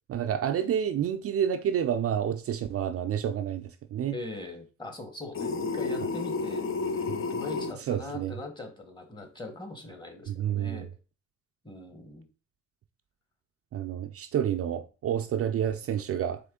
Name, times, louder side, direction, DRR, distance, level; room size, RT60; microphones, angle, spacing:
voice 1, 0.1-4.1 7.1-7.2 7.9-8.3 10.3-10.9 13.7-16.4, right 9 dB, 50° right, 0.4 m, -29 dB
voice 2, 4.1-6.7 7.3-10.9 11.6-12.3, left 2 dB, 15° left, 1.1 m, -41 dB
sound 1, 5.3-7.7, left 4 dB, 45° left, 0.6 m, -31 dB
4.3 x 3.1 x 3.6 m
cardioid pair, 90°, 30 cm